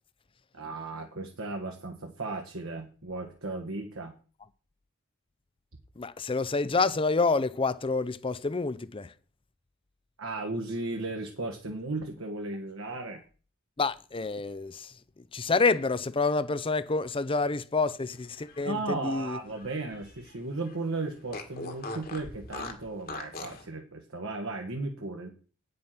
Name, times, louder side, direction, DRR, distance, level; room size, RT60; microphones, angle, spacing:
voice 1, 0.5-4.1 10.2-13.2 18.6-25.3, right 2 dB, 70° right, 1.6 m, -35 dB
voice 2, 6.0-9.1 13.8-14.9 15.3-19.4, left 3 dB, 25° left, 0.5 m, -28 dB
Fart, 18.3-20.4 20.7-20.8 21.3-23.6, left 3 dB, 45° left, 1.7 m, -41 dB
9.4 x 7.6 x 5.8 m
head